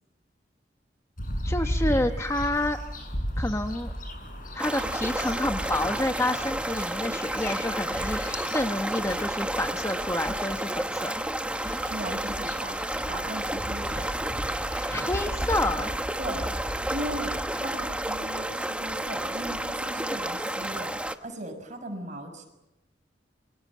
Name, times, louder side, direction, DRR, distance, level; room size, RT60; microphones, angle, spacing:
sound 1, 1.2-20.2, equal, 50° left, 7.5 m, -37 dB
voice 1, 1.4-2.8 3.4-3.9 4.5-11.1 14.9-15.9, left 1 dB, 15° left, 6 dB, 1.2 m, -29 dB
sound 2, 4.6-21.2, right 1 dB, 5° right, 1.3 m, -31 dB
sound 3, 11.4-17.8, equal, 25° right, 7.4 m, -39 dB
voice 2, 11.9-12.8 13.1-14.1 16.2-16.5 16.9-22.5, right 1 dB, 45° right, 5 dB, 6.2 m, -38 dB
28.5 x 23.5 x 7.4 m, 0.93 s
head